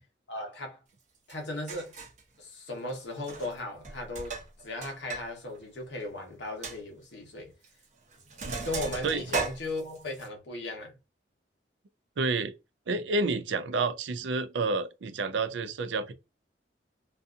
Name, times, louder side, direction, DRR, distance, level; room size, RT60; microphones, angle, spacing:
voice 1, 0.3-0.8 1.3-1.9 2.4-7.5 8.6-11.0, left 2 dB, 75° left, 0.9 m, -37 dB
Sink (filling or washing), 1.3-1.4 1.7-2.2 3.2-3.6 3.8-5.3 5.6-5.7 6.1-6.2 6.6-6.8 7.6-7.8 8.1-10.3, right 4 dB, 40° right, 0.7 m, -36 dB
voice 2, 12.2-12.5 12.9-16.1, right 3 dB, 80° right, 0.4 m, -29 dB
2.6 x 2.3 x 2.4 m
head